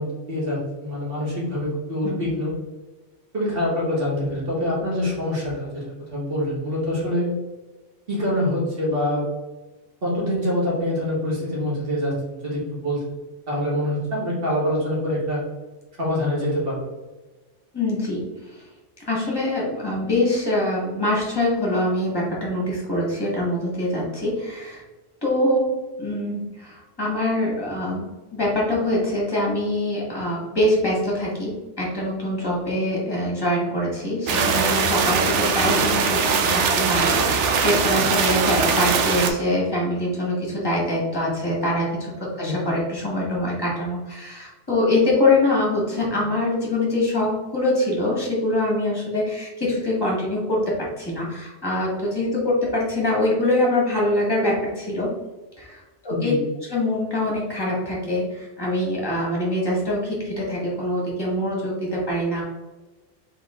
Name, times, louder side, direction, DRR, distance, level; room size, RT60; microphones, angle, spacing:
voice 1, 0.0-2.5 3.3-5.8 6.1-7.3 8.1-9.2 10.0-13.0 13.5-15.4 16.0-16.9 42.4-42.6 56.1-56.4, left 1 dB, 50° right, -6 dB, 1.8 m, -25 dB
voice 2, 17.7-18.2 19.1-24.8 25.2-25.7 26.0-55.1 55.6-56.3 56.7-62.4, left 1 dB, 20° left, -4 dB, 1.5 m, -24 dB
sound 1, 34.3-39.3, right 5 dB, 75° right, 0.9 m, -21 dB
3.6 x 3.5 x 3.5 m, 1.2 s
omnidirectional pair, 1.2 m